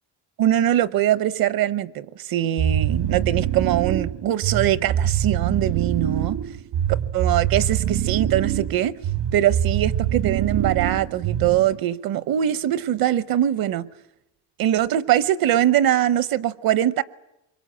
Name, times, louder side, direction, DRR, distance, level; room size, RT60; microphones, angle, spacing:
voice 1, 0.4-6.4 7.1-8.9 9.3-13.9 14.6-17.0, right 12 dB, 55° right, 0.9 m, -22 dB
sound 1, 2.6-11.8, right 10 dB, 70° right, 1.5 m, -24 dB
25.0 x 23.0 x 8.8 m
cardioid pair, 170°, 43 cm